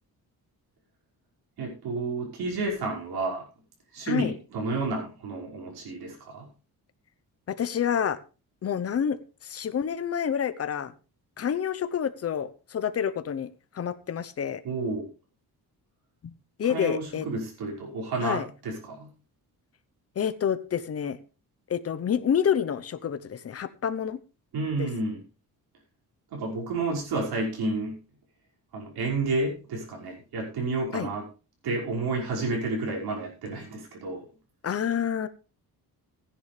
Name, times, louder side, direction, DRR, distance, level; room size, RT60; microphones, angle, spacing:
voice 1, 1.6-3.5 3.9-6.5 14.6-15.1 16.6-19.1 24.5-25.2 26.3-28.0 28.7-31.3 31.6-34.3, right 3 dB, 90° right, -1 dB, 5.7 m, -30 dB
voice 2, 7.5-8.2 8.6-9.2 9.4-10.9 11.4-13.5 13.7-14.6 16.6-17.3 18.2-18.5 20.2-21.2 21.7-24.2 24.8-24.9 30.9-31.1 34.6-35.3, left 8 dB, 40° left, 12 dB, 0.9 m, -28 dB
15.5 x 10.0 x 3.4 m, 0.33 s
cardioid pair, 155°, 37 cm